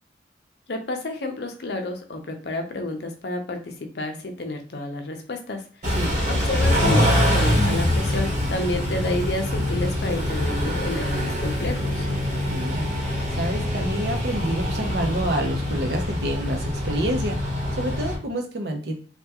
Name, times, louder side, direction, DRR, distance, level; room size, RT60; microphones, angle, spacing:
voice 1, 0.7-5.6 6.3-12.1, left 2 dB, 60° left, 4 dB, 0.6 m, -30 dB
Car / Idling / Accelerating revving vroom, 5.8-18.2, left 1 dB, 40° right, 1.0 m, -24 dB
voice 2, 12.2-13.1 13.3-17.4 17.7-18.9, right 1 dB, 55° right, 3 dB, 0.7 m, -28 dB
3.4 x 2.2 x 2.8 m, 0.42 s
head